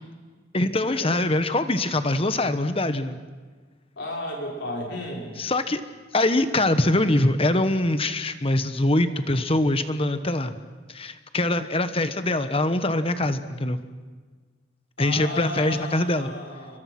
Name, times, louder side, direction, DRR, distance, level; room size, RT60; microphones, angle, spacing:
voice 1, 0.5-3.2 5.4-5.8 6.1-10.5 10.9-13.8 15.0-16.3, left 1 dB, 30° left, 10 dB, 1.3 m, -23 dB
voice 2, 4.0-5.4 15.0-16.8, left 1 dB, 60° left, 0 dB, 4.5 m, -34 dB
28.5 x 23.0 x 6.1 m, 1.4 s
head